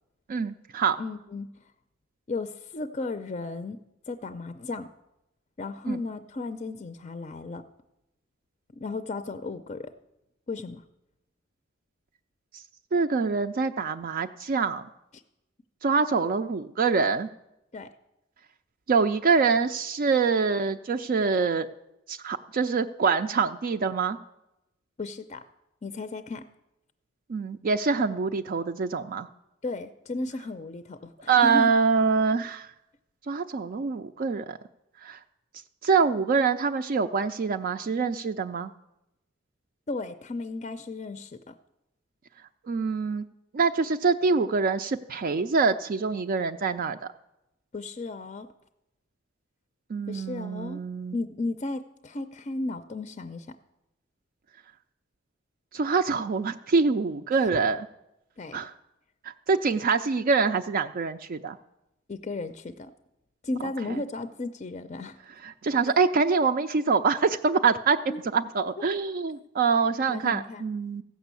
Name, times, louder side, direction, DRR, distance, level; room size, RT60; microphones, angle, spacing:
voice 1, 0.3-1.0 5.9-6.0 12.5-12.6 12.9-14.9 15.8-17.3 18.9-21.7 22.1-24.2 27.3-29.3 31.3-32.7 33.3-34.6 35.0-35.2 35.8-38.7 42.7-43.3 43.5-47.1 49.9-51.2 55.7-57.9 58.5-58.7 59.2-61.6 65.4-68.0 68.3-71.0, right 5 dB, 50° right, 7 dB, 0.4 m, -25 dB
voice 2, 1.0-1.5 2.3-3.8 4.1-4.9 5.6-7.6 8.7-9.9 10.5-10.8 17.7-17.9 25.0-25.4 25.8-26.4 29.6-31.7 39.9-41.6 47.7-48.5 50.1-50.8 51.1-53.5 58.4-58.6 62.1-62.9 63.4-65.2 68.1-68.2 68.9-69.0 70.1-70.6, left 3 dB, 35° left, 11 dB, 0.5 m, -34 dB
15.0 x 6.2 x 8.2 m, 0.91 s
head